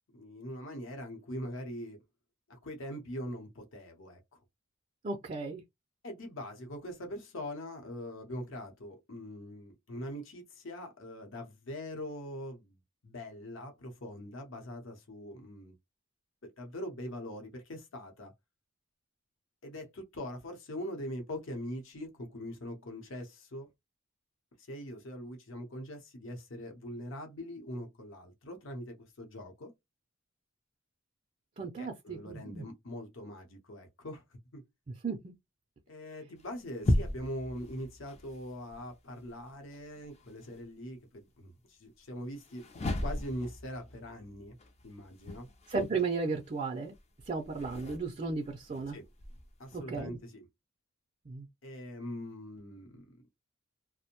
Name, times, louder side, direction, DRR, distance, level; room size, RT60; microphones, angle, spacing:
voice 1, 0.2-2.0 2.5-4.4 6.0-15.8 16.4-18.3 19.6-23.7 24.6-29.7 31.6-34.6 35.9-42.7 43.0-44.5 44.8-45.5 48.9-49.1 49.6-50.5 51.6-53.1, equal, 65° left, 0.8 m, -42 dB
voice 2, 5.0-5.6 31.6-32.6 34.9-35.3 45.7-46.9 47.3-49.0 49.7-50.2 51.3-51.5, right 4 dB, 35° right, 0.4 m, -35 dB
sound 1, 36.4-40.6 42.3-49.8, left 1 dB, 30° left, 0.5 m, -38 dB
2.5 x 2.0 x 2.9 m
head